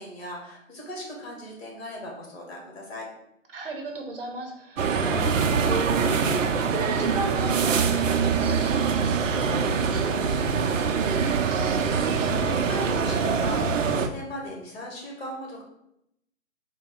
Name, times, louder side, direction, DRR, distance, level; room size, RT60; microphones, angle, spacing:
voice 1, 0.0-3.0 11.8-15.6, equal, 50° left, -1 dB, 1.5 m, -38 dB
voice 2, 3.5-11.2, right 2 dB, 45° right, 2 dB, 0.8 m, -36 dB
sound 1, 4.8-14.1, right 5 dB, 70° right, 0.6 m, -24 dB
4.3 x 2.2 x 4.2 m, 0.80 s
hypercardioid pair, 145°, 40 cm